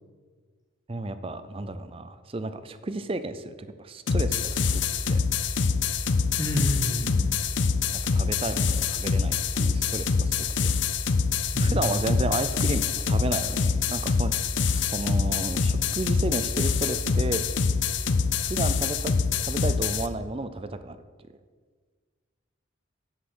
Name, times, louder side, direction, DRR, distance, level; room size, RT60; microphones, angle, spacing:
voice 1, 0.9-4.8 5.1-5.2 8.1-10.7 11.6-14.3 14.7-17.4 18.4-19.1 19.4-21.0, right 2 dB, 25° right, 11 dB, 0.5 m, -32 dB
sound 1, 4.1-20.1, left 5 dB, 65° left, 0.5 m, -25 dB
voice 2, 6.4-7.4 11.5-12.0, equal, 15° left, 0 dB, 1.3 m, -29 dB
8.4 x 8.2 x 6.1 m, 1.6 s
head